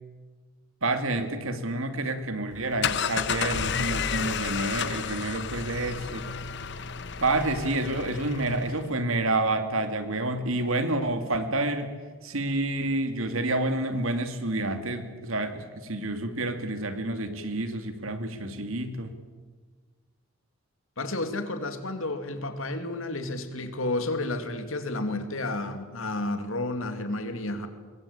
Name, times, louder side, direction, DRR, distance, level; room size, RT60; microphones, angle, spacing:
voice 1, 0.8-6.3 7.2-11.9 12.2-19.1, right 2 dB, 70° right, 8 dB, 2.5 m, -29 dB
sound 1, 2.5-8.9, left 6 dB, 55° left, 1.1 m, -31 dB
voice 2, 21.0-27.7, left 2 dB, 70° left, 8 dB, 2.6 m, -31 dB
24.5 x 22.5 x 8.7 m, 1.5 s
head